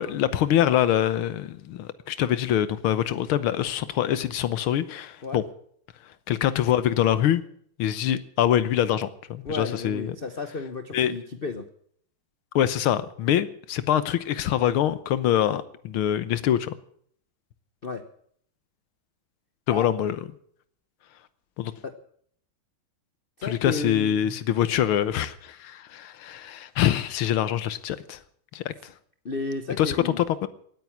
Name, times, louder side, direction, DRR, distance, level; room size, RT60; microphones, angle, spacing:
voice 1, 0.0-5.4 6.3-7.4 7.8-10.2 10.9-11.1 12.6-16.8 19.7-20.2 21.6-21.7 23.4-28.2 28.5-28.7 29.8-30.5, left 11 dB, 85° left, 14 dB, 1.8 m, -24 dB
voice 2, 9.4-11.7 17.8-18.0 19.7-19.9 21.8-22.0 23.4-24.4 29.2-30.3, left 3 dB, 45° left, 8 dB, 0.7 m, -33 dB
17.5 x 9.3 x 7.2 m, 0.62 s
omnidirectional pair, 2.3 m